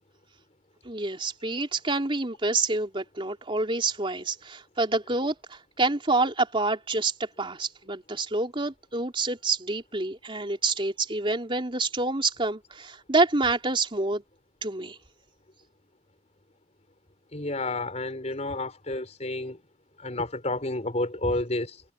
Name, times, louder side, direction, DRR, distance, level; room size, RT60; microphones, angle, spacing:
voice 1, 0.8-14.2 14.6-15.0 21.2-21.3, right 3 dB, 30° right, 3.5 m, -27 dB
voice 2, 17.3-19.6 20.0-21.8, left 2 dB, 40° left, 4.8 m, -30 dB
head